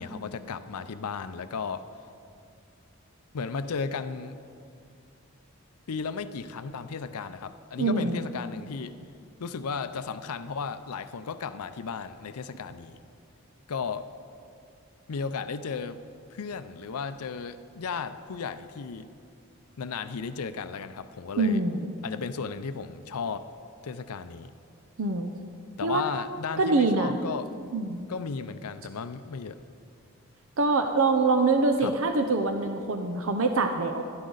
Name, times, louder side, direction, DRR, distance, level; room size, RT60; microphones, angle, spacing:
voice 1, 0.0-1.8 3.3-4.4 5.9-9.0 9.4-13.0 13.7-14.1 15.1-16.0 16.3-19.1 19.8-21.6 22.0-23.5 23.8-24.5 25.8-27.5 28.1-29.6 31.8-32.0, left 5 dB, 85° left, 11 dB, 0.5 m, -35 dB
voice 2, 7.8-8.3 21.4-21.9 25.0-25.3 25.8-26.0 26.6-27.2 27.7-28.0 30.6-34.0, right 3 dB, 65° right, 6 dB, 0.7 m, -24 dB
16.5 x 12.5 x 4.0 m, 2.4 s
head